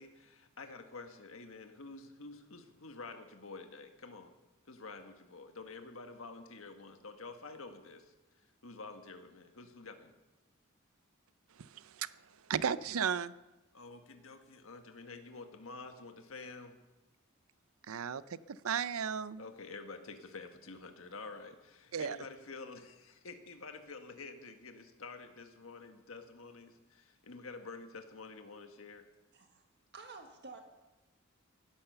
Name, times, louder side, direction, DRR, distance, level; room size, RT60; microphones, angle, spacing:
voice 1, 0.0-4.3 4.6-10.1 13.7-16.8 19.4-29.1, left 3 dB, 70° left, 1.5 m, -49 dB
voice 2, 11.5-13.3 17.9-19.4 21.9-22.2, right 7 dB, 85° right, 0.5 m, -35 dB
voice 3, 29.3-29.7 29.9-30.6, right 4 dB, 55° right, 1.5 m, -50 dB
16.5 x 11.5 x 6.8 m
head